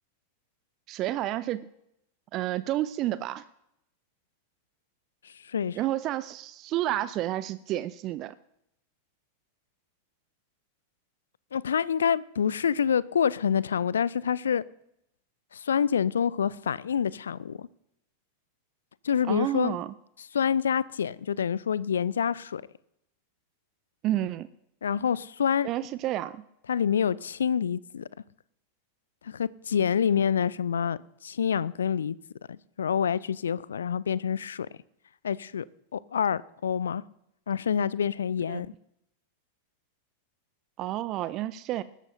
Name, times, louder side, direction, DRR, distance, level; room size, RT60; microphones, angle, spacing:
voice 1, 0.9-1.7 2.3-3.4 5.7-8.3 19.2-19.9 24.0-24.5 25.6-26.4 38.5-38.7 40.8-41.8, right 14 dB, 35° right, 0.4 m, -30 dB
voice 2, 5.2-5.8 11.5-14.6 15.5-17.7 19.0-19.8 20.3-22.6 24.8-25.7 26.7-28.1 29.2-32.2 32.5-34.7 35.2-35.7 35.9-37.0 37.5-38.7, left 7 dB, 65° left, 0.4 m, -27 dB
20.5 x 13.5 x 2.6 m
figure-of-eight pair, 90°, 0 cm